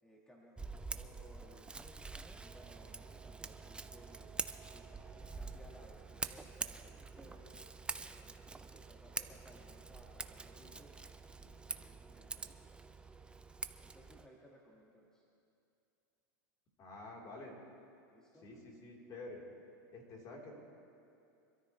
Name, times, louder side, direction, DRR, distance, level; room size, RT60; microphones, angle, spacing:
voice 1, 0.0-1.7 2.4-4.3 4.6-7.6 8.1-11.0 11.3-13.1 13.8-15.2 18.1-18.5, equal, 5° left, -3 dB, 1.7 m, -61 dB
Scissors, 0.6-14.3, right 3 dB, 10° right, 0.5 m, -46 dB
voice 2, 16.8-17.5 18.4-19.4 19.9-20.6, left 2 dB, 40° left, -2 dB, 3.7 m, -49 dB
25.5 x 13.5 x 3.2 m, 2.6 s
supercardioid pair, 120°, 10 cm